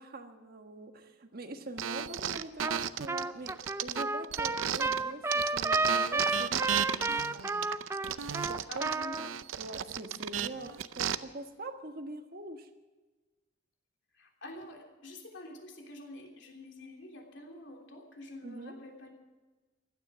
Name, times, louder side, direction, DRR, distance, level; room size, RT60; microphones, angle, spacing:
voice 1, 0.0-3.5 3.8-7.7 8.5-8.9 9.6-12.7 18.4-18.8, right 2 dB, 50° right, 6 dB, 1.3 m, -43 dB
sound 1, 1.8-5.0 5.3-11.1, right 9 dB, 85° right, 0.6 m, -34 dB
Trumpet, 2.6-2.8 3.1-9.3, right 3 dB, 15° right, 0.4 m, -31 dB
voice 2, 8.7-9.2 14.1-19.1, left 2 dB, 65° left, 1 dB, 3.2 m, -47 dB
16.5 x 12.5 x 6.3 m, 1.2 s
head